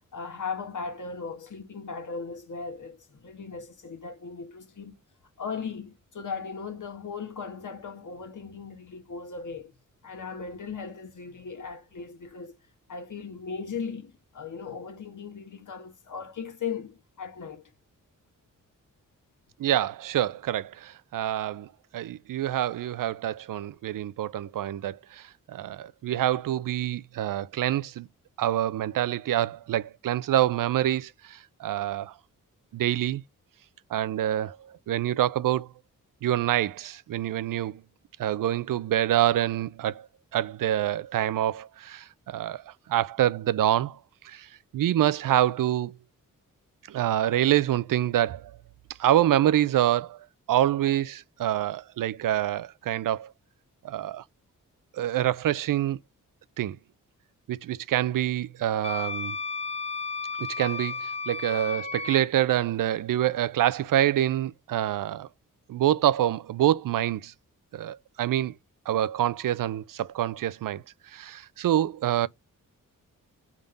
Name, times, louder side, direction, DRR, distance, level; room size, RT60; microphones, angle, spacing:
voice 1, 0.1-5.0 5.4-9.7 10.0-12.5 12.9-17.7, left 5 dB, 65° left, 1.6 m, -37 dB
voice 2, 19.6-28.1 28.4-32.1 32.7-33.2 33.9-35.7 36.2-37.8 38.2-40.1 40.3-44.0 44.2-44.5 44.7-45.9 46.9-48.5 49.0-50.2 50.5-53.3 53.8-54.2 54.9-56.0 56.6-56.8 57.5-59.4 60.4-65.3 65.7-67.3 67.7-68.5 68.9-70.8 71.1-72.3, right 12 dB, 75° right, 0.5 m, -26 dB
Wind instrument woodwind instrument, 58.8-62.2, left 4 dB, 20° left, 0.5 m, -33 dB
5.3 x 3.7 x 5.1 m
cardioid pair, 70°, 33 cm